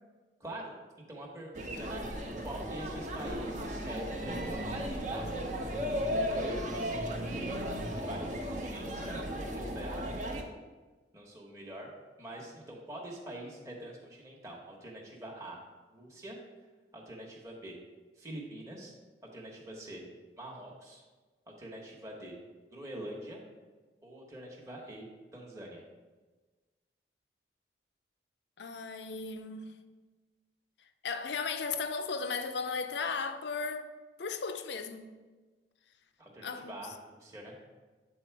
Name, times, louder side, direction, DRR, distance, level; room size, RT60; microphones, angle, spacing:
voice 1, 0.4-0.8 1.1-2.1 2.4-5.3 6.2-9.2 9.5-10.4 11.1-11.9 12.2-15.6 15.9-16.4 16.9-17.8 18.2-18.9 19.3-20.0 20.4-21.0 21.6-22.4 22.7-23.4 24.0-25.1 25.3-25.8 36.2-37.6, right 1 dB, 20° right, 1.1 m, -45 dB
sound 1, 1.5-10.4, equal, 45° right, 0.8 m, -35 dB
voice 2, 28.6-29.8 30.8-33.9 34.2-35.1 36.4-36.7, left 4 dB, 75° left, 0.5 m, -36 dB
8.5 x 4.1 x 4.6 m
head